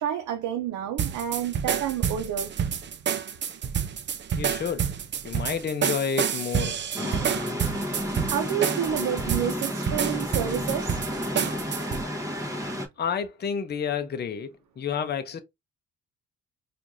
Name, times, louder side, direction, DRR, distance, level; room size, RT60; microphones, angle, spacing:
voice 1, 0.0-2.6 8.2-11.0, right 10 dB, 80° right, 0.7 m, -29 dB
sound 1, 1.0-12.0, right 8 dB, 40° right, 0.5 m, -29 dB
voice 2, 4.4-4.9 5.2-7.2 13.0-15.4, left 6 dB, 35° left, 0.6 m, -30 dB
sound 2, 6.9-12.9, equal, 10° right, 1.1 m, -31 dB
4.5 x 2.5 x 2.6 m
cardioid pair, 90°, 30 cm